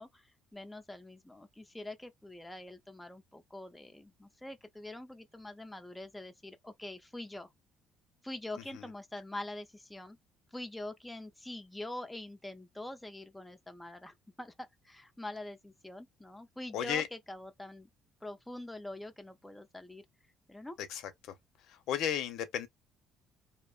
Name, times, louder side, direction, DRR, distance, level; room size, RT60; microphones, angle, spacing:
voice 1, 0.0-7.5 8.2-10.2 10.5-17.9 18.2-20.0 20.5-20.8, left 1 dB, 5° left, 0.4 m, -45 dB
voice 2, 16.7-17.1 20.9-21.3 21.7-22.7, left 9 dB, 75° left, 0.6 m, -34 dB
2.7 x 2.0 x 2.3 m
cardioid pair, 140°, 0 cm